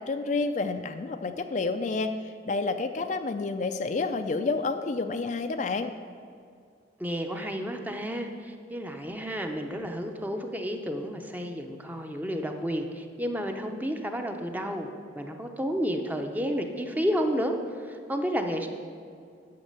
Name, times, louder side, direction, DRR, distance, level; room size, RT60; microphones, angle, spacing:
voice 1, 0.0-2.1 2.4-5.9, left 3 dB, 40° left, 8 dB, 0.4 m, -29 dB
voice 2, 7.0-14.9 15.1-18.7, equal, 10° right, 4 dB, 0.6 m, -31 dB
9.5 x 6.6 x 6.6 m, 2.3 s
head